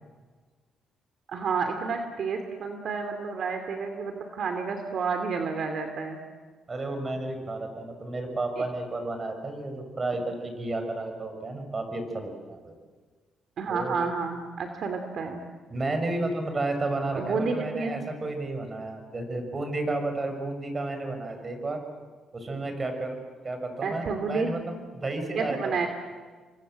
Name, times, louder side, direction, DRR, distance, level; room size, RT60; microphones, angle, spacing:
voice 1, 1.3-6.2 13.6-15.4 17.1-17.9 23.8-24.5 25.4-25.9, right 5 dB, 60° right, 6 dB, 2.9 m, -30 dB
voice 2, 6.7-12.7 13.7-14.0 15.7-21.8 22.3-23.2 23.4-25.9, right 2 dB, 30° right, 6 dB, 5.8 m, -32 dB
30.0 x 24.5 x 7.7 m, 1.4 s
cardioid pair, 90°, 0 cm